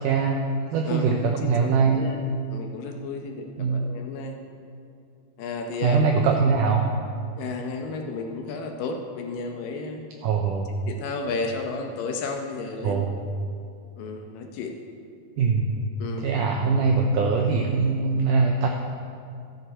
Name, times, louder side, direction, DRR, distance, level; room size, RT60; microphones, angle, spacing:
voice 1, 0.0-2.0 3.6-3.8 5.8-6.9 10.2-10.7 12.8-13.2 15.4-15.9 16.2-18.7, right 5 dB, 85° right, 2 dB, 1.8 m, -22 dB
voice 2, 0.9-2.2 2.5-4.4 5.4-6.3 7.4-10.0 10.9-13.0 14.0-14.7 16.0-16.3, left 4 dB, 75° left, 3 dB, 2.3 m, -33 dB
14.0 x 9.9 x 4.3 m, 2.4 s
omnidirectional pair, 4.5 m